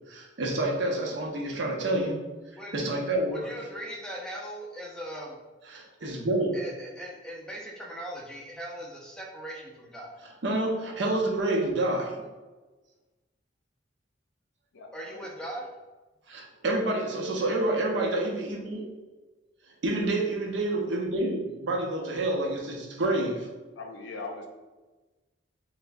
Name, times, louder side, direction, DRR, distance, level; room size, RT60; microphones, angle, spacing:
voice 1, 0.1-2.2 2.7-3.5 5.7-6.5 10.4-12.2 16.3-18.8 19.8-23.5, right 2 dB, 70° right, 0 dB, 0.6 m, -28 dB
voice 2, 3.3-5.4 6.5-10.2 14.9-15.7, equal, 5° left, -2 dB, 0.4 m, -39 dB
voice 3, 14.7-15.3 17.7-18.4 23.1-23.4 23.8-24.5, left 3 dB, 75° left, 3 dB, 0.5 m, -42 dB
4.3 x 2.0 x 2.6 m, 1.2 s
head